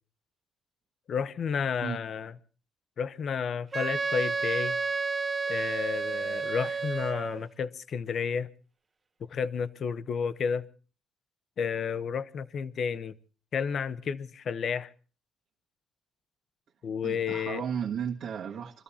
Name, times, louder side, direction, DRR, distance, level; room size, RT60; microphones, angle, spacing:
voice 1, 1.1-2.3 3.0-4.8 5.5-8.5 9.3-10.6 11.6-13.1 13.5-14.9 16.8-17.6, left 6 dB, 60° left, 0.9 m, -31 dB
Wind instrument woodwind instrument, 3.7-7.5, right 4 dB, 30° right, 1.0 m, -31 dB
voice 2, 17.0-18.8, right 8 dB, 70° right, 1.5 m, -34 dB
23.5 x 13.5 x 4.3 m
cardioid pair, 90°, 0 cm